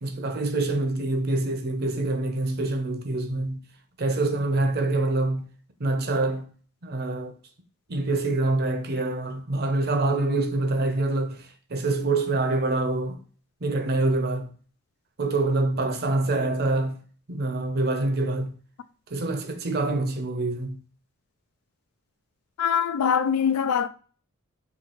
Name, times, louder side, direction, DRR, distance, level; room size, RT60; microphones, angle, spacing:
voice 1, 0.0-3.6 4.0-5.5 5.8-6.5 6.8-7.3 7.9-13.2 13.6-14.5 15.2-17.0 17.3-18.6 19.1-20.8, right 2 dB, 45° right, 0.6 m, -26 dB
voice 2, 22.6-23.9, left 7 dB, 80° left, 0.3 m, -23 dB
5.6 x 2.8 x 2.9 m
head